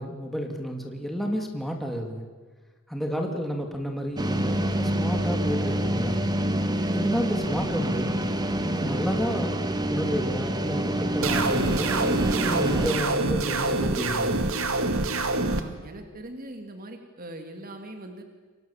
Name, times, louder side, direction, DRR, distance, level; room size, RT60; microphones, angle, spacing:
voice 1, 0.0-2.3 2.9-6.3 6.9-8.2 8.6-11.9 12.4-14.5, equal, ahead, 2 dB, 2.7 m, -31 dB
voice 2, 3.1-3.4 15.4-18.2, right 1 dB, 45° right, 5 dB, 2.7 m, -41 dB
sound 1, 4.2-13.0, right 1 dB, 20° right, 1.7 m, -27 dB
sound 2, 11.2-15.6, right 2 dB, 90° right, 2.2 m, -26 dB
29.5 x 24.5 x 7.4 m, 1.4 s
head